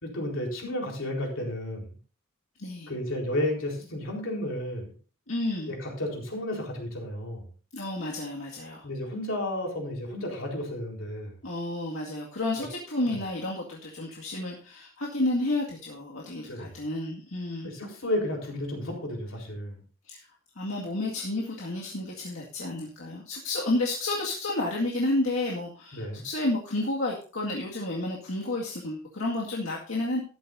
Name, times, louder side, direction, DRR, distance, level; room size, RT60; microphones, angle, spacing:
voice 1, 0.0-1.9 2.9-4.9 5.7-7.4 8.8-11.3 12.6-12.7 13.1-13.2 16.4-16.8 17.6-19.7 25.9-26.2, left 1 dB, 70° left, 0 dB, 4.2 m, -32 dB
voice 2, 2.6-2.9 5.3-5.7 7.7-8.9 11.4-17.7 20.1-20.2 20.6-30.2, left 2 dB, 90° left, -2 dB, 2.1 m, -31 dB
13.5 x 11.5 x 2.7 m, 0.38 s
head